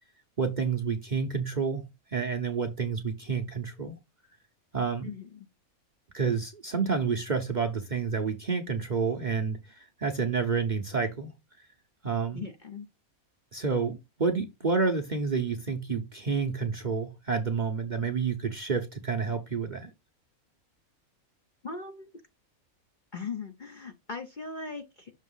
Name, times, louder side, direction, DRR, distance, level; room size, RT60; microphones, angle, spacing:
voice 1, 0.4-4.0 4.7-5.1 6.1-11.3 12.0-12.5 13.5-19.9, right 5 dB, 45° right, 0.7 m, -29 dB
voice 2, 5.0-5.5 12.3-12.9 21.6-22.1 23.1-25.1, left 4 dB, 45° left, 0.7 m, -39 dB
6.4 x 2.9 x 5.4 m
omnidirectional pair, 1.5 m